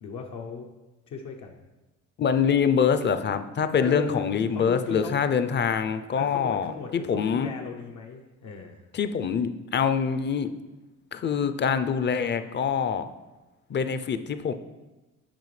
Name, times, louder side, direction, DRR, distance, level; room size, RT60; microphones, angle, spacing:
voice 1, 0.0-0.7 1.1-1.6 3.8-5.2 6.2-8.8, left 5 dB, 70° left, 0 dB, 0.8 m, -36 dB
voice 2, 2.2-7.5 8.9-10.6 11.1-13.1 13.7-14.5, left 7 dB, 35° left, 11 dB, 0.5 m, -25 dB
9.1 x 5.1 x 3.2 m, 1.1 s
cardioid pair, 90°, 30 cm